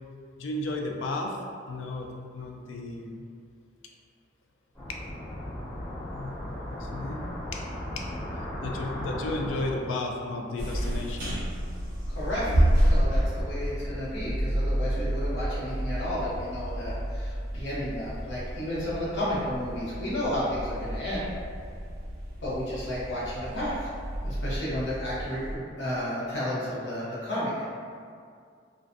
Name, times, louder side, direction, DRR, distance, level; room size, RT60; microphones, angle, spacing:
voice 1, 0.4-1.4 1.7-2.1 2.3-3.2 4.9-5.0 6.1-7.2 7.5-7.6 8.0-8.1 8.6-11.4, left 2 dB, 85° left, 2 dB, 0.3 m, -33 dB
sound 1, 4.7-9.8, left 1 dB, 20° left, 1.2 m, -36 dB
sound 2, 10.6-25.6, right 1 dB, 50° right, 0.6 m, -30 dB
voice 2, 12.1-21.3 22.4-23.8 24.2-27.6, left 1 dB, 70° left, -9 dB, 0.9 m, -32 dB
2.4 x 2.1 x 2.5 m, 2.2 s
head